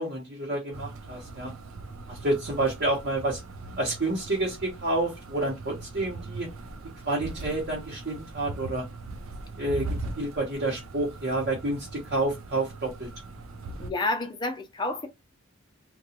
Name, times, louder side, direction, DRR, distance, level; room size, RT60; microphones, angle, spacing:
voice 1, 0.0-1.5 2.1-3.4 3.8-6.5 7.0-8.9 9.6-9.9 10.2-13.1, right 2 dB, 50° right, 0.9 m, -29 dB
sound 1, 0.7-13.9, right 2 dB, 80° right, 0.5 m, -40 dB
voice 2, 13.8-15.1, left 2 dB, 20° left, 0.5 m, -29 dB
2.8 x 2.3 x 2.8 m
head